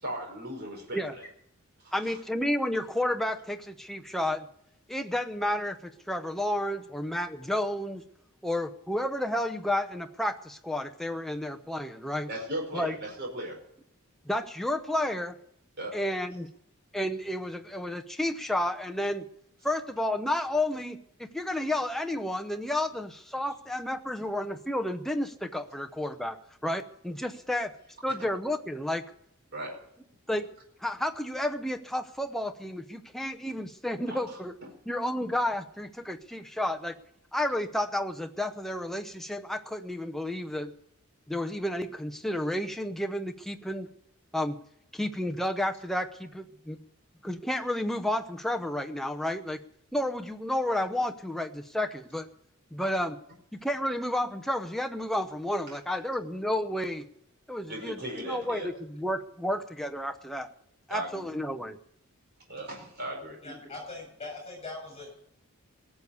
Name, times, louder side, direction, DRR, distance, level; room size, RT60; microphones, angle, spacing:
voice 1, 0.0-1.3 1.8-2.2 12.3-13.6 15.8-16.0 29.5-29.8 34.0-34.4 55.7-55.8 57.7-58.7 60.9-61.3 62.5-63.4, right 1 dB, 45° right, 0 dB, 5.0 m, -37 dB
voice 2, 1.9-4.5 4.9-8.0 8.4-12.3 12.7-13.0 14.3-15.3 15.9-16.5 16.9-19.2 19.6-26.4 26.6-27.7 28.0-29.1 30.3-30.5 30.8-34.5 34.9-37.0 37.3-40.7 41.3-43.9 44.3-44.5 44.9-46.8 47.2-49.6 49.9-52.3 52.7-53.2 53.5-57.1 57.5-60.5 60.9-61.8, left 1 dB, ahead, 4 dB, 0.7 m, -31 dB
voice 3, 63.4-65.1, left 2 dB, 25° left, 2 dB, 7.7 m, -41 dB
18.0 x 7.1 x 8.1 m, 0.75 s
head